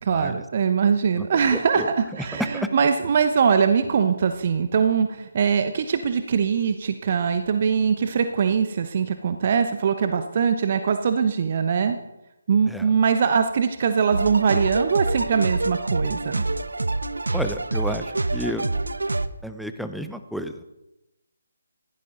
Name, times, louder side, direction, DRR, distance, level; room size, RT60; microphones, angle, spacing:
voice 1, 0.0-12.0 12.5-16.4, right 6 dB, 40° right, 8 dB, 0.9 m, -22 dB
voice 2, 1.5-1.9 2.2-2.7 12.7-12.9 17.3-18.6 19.4-20.6, equal, ahead, 8 dB, 0.8 m, -31 dB
sound 1, 14.1-19.3, right 2 dB, 70° right, 0.9 m, -26 dB
20.5 x 15.5 x 3.9 m, 0.94 s
figure-of-eight pair, 145°, 0 cm